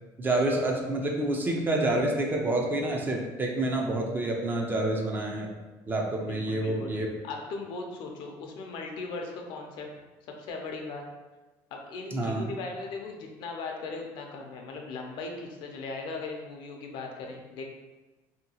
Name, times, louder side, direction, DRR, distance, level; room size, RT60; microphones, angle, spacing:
voice 1, 0.2-5.5 5.9-7.1 12.1-12.5, right 2 dB, 20° right, 0 dB, 0.4 m, -28 dB
voice 2, 6.2-6.9 7.2-9.9 10.4-11.0 11.7-17.6, left 3 dB, 65° left, 2 dB, 0.5 m, -38 dB
2.8 x 2.2 x 2.8 m, 1.2 s
cardioid pair, 120°, 9 cm